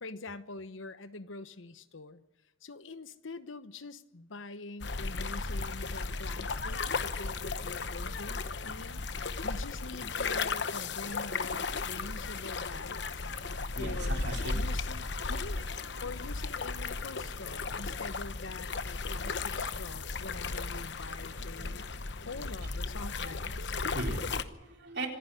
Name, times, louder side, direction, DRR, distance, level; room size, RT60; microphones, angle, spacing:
voice 1, 0.0-2.2 2.6-9.0 9.4-13.3 13.8-14.2 14.5-15.6 16.0-23.8, left 3 dB, 90° left, 1.1 m, -45 dB
sound 1, 4.8-24.4, left 4 dB, 65° left, 1.0 m, -35 dB
voice 2, 13.7-14.5 21.6-21.7 23.2-23.4 23.9-25.1, right 2 dB, 60° right, 3.8 m, -39 dB
26.0 x 10.5 x 9.8 m
head